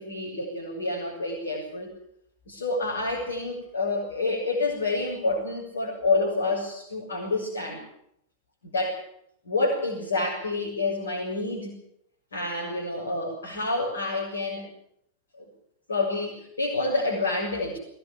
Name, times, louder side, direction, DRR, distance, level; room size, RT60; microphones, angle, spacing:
voice 1, 0.0-1.9 2.5-7.8 8.6-9.0 9.5-11.8 12.3-14.7 15.4-15.5 15.9-17.8, left 2 dB, 70° left, -3 dB, 6.9 m, -28 dB
22.0 x 19.0 x 7.5 m, 0.73 s
figure-of-eight pair, 90°, 0 cm